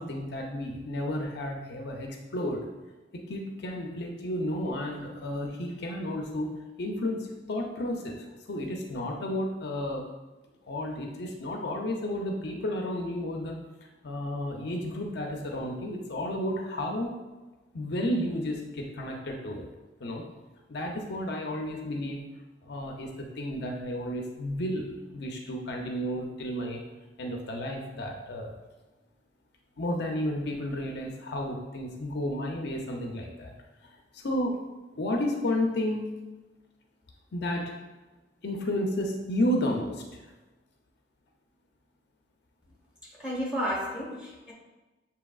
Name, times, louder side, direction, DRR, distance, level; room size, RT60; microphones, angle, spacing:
voice 1, 0.0-2.6 3.1-10.0 10.7-13.6 14.0-17.1 17.7-19.7 20.0-20.2 20.7-22.2 22.6-26.8 27.2-28.5 29.8-33.5 34.1-34.5 35.0-36.2 37.3-37.7 38.4-40.0, left 1 dB, 65° left, 1 dB, 0.6 m, -32 dB
voice 2, 43.0-44.5, equal, 5° right, -5 dB, 1.3 m, -32 dB
7.0 x 2.8 x 2.3 m, 1.2 s
head